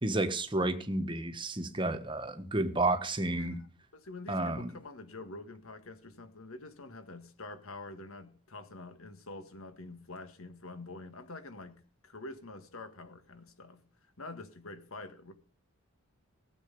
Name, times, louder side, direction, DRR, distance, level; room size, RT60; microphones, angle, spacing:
voice 1, 0.0-3.6 4.3-4.7, right 2 dB, 25° right, 1.3 m, -31 dB
voice 2, 3.9-13.8 14.2-15.3, left 2 dB, 70° left, 1.8 m, -46 dB
16.5 x 8.2 x 5.4 m
head